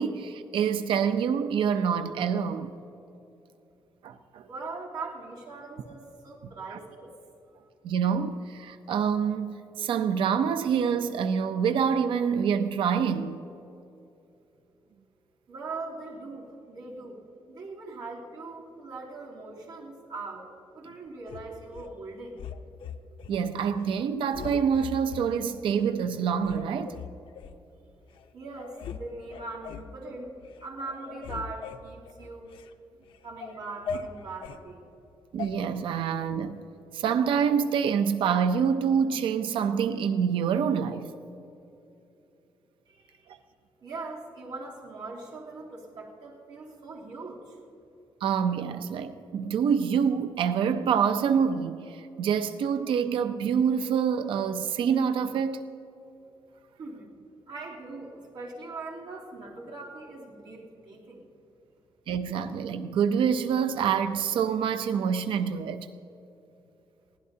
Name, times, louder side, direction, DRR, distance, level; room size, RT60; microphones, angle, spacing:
voice 1, 0.0-2.7 4.0-4.5 6.7-6.8 7.8-13.4 23.3-27.0 35.3-36.6 36.9-41.1 48.2-55.6 62.1-65.9, right 7 dB, 90° right, 0.6 m, -26 dB
voice 2, 4.5-7.1 15.5-17.2 17.5-22.4 28.3-30.3 30.6-32.5 33.2-34.9 42.9-43.3 43.8-47.6 56.8-57.1 57.5-61.2, right 3 dB, 70° right, 3.2 m, -41 dB
sound 1, 21.3-21.9 22.4-23.4 23.8-24.0 24.3-25.3 25.8-25.9 26.4-27.6 28.2-28.3 28.5-29.0 29.3-29.9 30.4-30.6 30.9-32.7 33.1-34.6 35.4-35.5, left 6 dB, 85° left, 0.7 m, -40 dB
22.5 x 16.5 x 2.8 m
wide cardioid pair, 155°, 9 cm